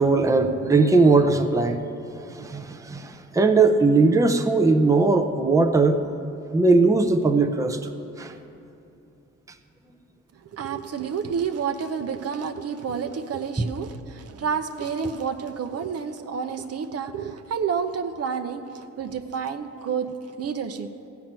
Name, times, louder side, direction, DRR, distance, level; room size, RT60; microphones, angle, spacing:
voice 1, 0.0-1.8 2.3-6.0 6.5-7.9 8.2-8.3, right 3 dB, 10° right, 5 dB, 0.7 m, -19 dB
voice 2, 10.5-20.1 20.4-20.9, right 6 dB, 55° right, 7 dB, 0.8 m, -29 dB
15.0 x 6.0 x 8.9 m, 2.7 s
cardioid pair, 90°, 30 cm